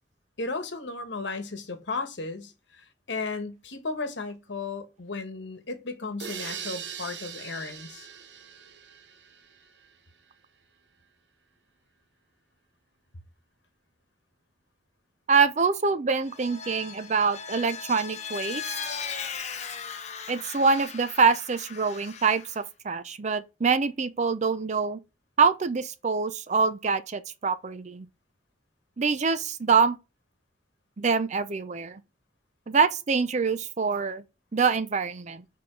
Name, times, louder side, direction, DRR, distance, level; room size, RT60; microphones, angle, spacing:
voice 1, 0.4-8.1, left 3 dB, 70° left, 1.2 m, -35 dB
sound 1, 6.2-9.9, right 8 dB, 70° right, 0.9 m, -41 dB
voice 2, 15.3-18.8 20.3-25.0 25.4-28.1 29.0-30.0 31.0-32.0 32.7-34.2 34.5-35.4, right 5 dB, 40° right, 0.5 m, -25 dB
Vehicle, 16.2-22.6, left 6 dB, 35° left, 0.7 m, -38 dB
6.6 x 3.8 x 3.7 m
head